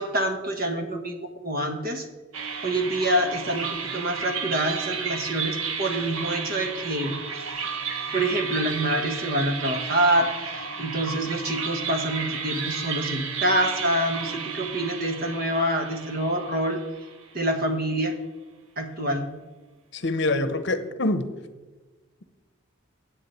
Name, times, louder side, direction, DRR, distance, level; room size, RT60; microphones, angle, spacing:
voice 1, 0.0-2.1 2.6-7.1 8.1-16.8 17.3-18.1 18.8-19.3, right 1 dB, 45° right, 5 dB, 1.4 m, -26 dB
sound 1, 2.3-17.6, right 6 dB, 90° right, 1.1 m, -33 dB
voice 2, 19.9-21.3, left 2 dB, 60° left, 11 dB, 0.9 m, -25 dB
8.6 x 7.4 x 8.1 m, 1.2 s
head